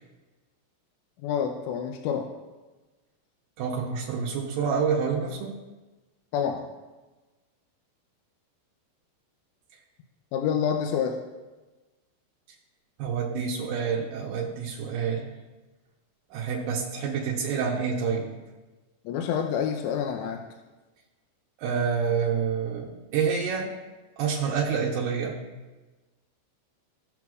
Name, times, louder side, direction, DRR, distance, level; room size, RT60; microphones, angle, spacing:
voice 1, 1.2-2.3 6.3-6.7 10.3-11.2 19.1-20.4, left 8 dB, 85° left, 3 dB, 2.8 m, -27 dB
voice 2, 3.6-5.6 13.0-15.3 16.3-18.3 21.6-23.7 24.2-25.4, right 6 dB, 80° right, -3 dB, 2.1 m, -28 dB
18.0 x 6.1 x 2.4 m, 1.2 s
omnidirectional pair, 5.0 m